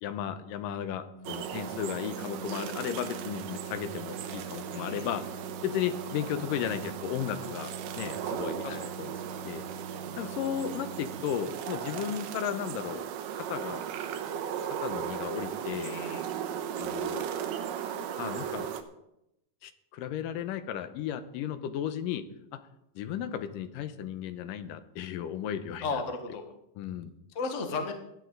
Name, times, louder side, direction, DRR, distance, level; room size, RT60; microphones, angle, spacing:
voice 1, 0.0-5.3 5.6-9.1 9.5-9.6 10.2-13.1 13.3-13.8 14.8-16.0 16.8-17.3 18.2-18.7 19.6-22.2 23.0-25.9 26.8-27.1, left 9 dB, 90° left, 11 dB, 2.4 m, -34 dB
Organ, 1.1-11.9, right 3 dB, 30° right, 6.2 m, -44 dB
sound 1, 1.2-18.8, right 9 dB, 85° right, 2.5 m, -37 dB
voice 2, 4.7-5.1 8.6-9.2 15.8-16.3 25.8-26.4 27.3-27.9, left 4 dB, 65° left, 5 dB, 0.7 m, -35 dB
16.5 x 11.0 x 3.8 m, 0.83 s
omnidirectional pair, 3.8 m